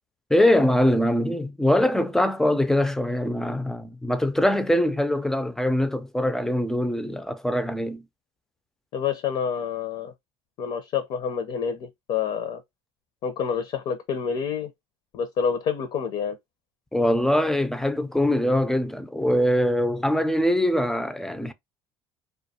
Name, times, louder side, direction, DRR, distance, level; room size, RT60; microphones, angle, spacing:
voice 1, 0.3-8.0 16.9-21.5, left 1 dB, 5° left, 0.3 m, -23 dB
voice 2, 8.9-10.1 10.6-12.6 13.2-14.7 15.1-16.4, left 7 dB, 60° left, 0.5 m, -28 dB
2.2 x 2.2 x 2.7 m
supercardioid pair, 95°, 12 cm